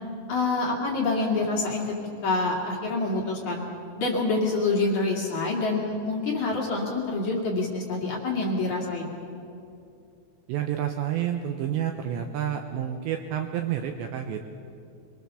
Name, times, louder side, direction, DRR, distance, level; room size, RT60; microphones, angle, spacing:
voice 1, 0.3-1.9 2.2-3.6 4.0-9.1, left 3 dB, 45° left, -2 dB, 3.0 m, -26 dB
voice 2, 10.5-14.5, right 10 dB, 75° right, 5 dB, 2.7 m, -29 dB
24.0 x 22.5 x 6.9 m, 2.5 s
omnidirectional pair, 6.0 m